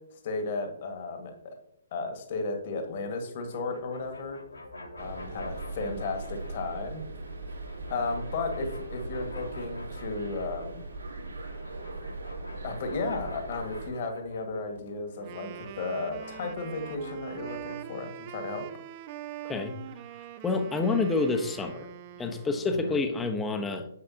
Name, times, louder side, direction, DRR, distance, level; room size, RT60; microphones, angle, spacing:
voice 1, 0.1-1.6 1.9-4.4 4.9-7.0 7.9-10.9 12.6-18.7 22.7-23.0, left 3 dB, 40° left, 5 dB, 1.7 m, -34 dB
sound 1, 3.4-6.9 7.2-10.9 11.2-17.8, left 1 dB, 80° left, 2.6 m, -48 dB
sound 2, 5.0-13.9, right 2 dB, 75° right, 2.5 m, -39 dB
Wind instrument woodwind instrument, 15.2-22.9, right 11 dB, 35° right, 0.6 m, -43 dB
voice 2, 19.4-19.7 20.4-21.9 22.2-23.9, left 3 dB, 10° left, 6 dB, 0.9 m, -28 dB
9.8 x 7.7 x 2.8 m, 0.76 s
figure-of-eight pair, 130°, 0 cm